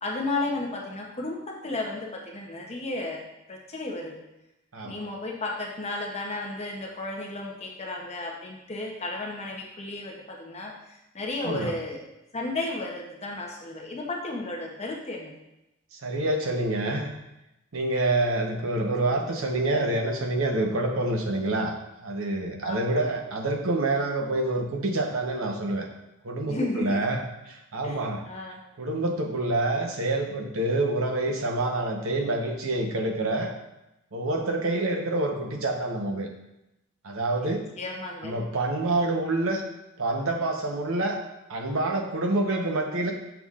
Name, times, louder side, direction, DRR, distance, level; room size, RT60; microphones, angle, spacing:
voice 1, 0.0-3.2 3.5-4.2 4.8-12.0 12.3-15.3 22.6-23.0 26.5-27.0 27.8-28.6 37.7-38.4, left 2 dB, 30° left, -1 dB, 0.8 m, -33 dB
voice 2, 16.0-17.1 17.7-21.7 22.0-25.9 26.2-27.2 27.5-28.2 28.8-33.5 34.1-36.3 37.0-37.6 38.2-39.6 40.0-41.2 41.5-43.1, right 2 dB, 75° right, 2 dB, 0.9 m, -27 dB
6.9 x 5.9 x 2.4 m, 0.91 s
head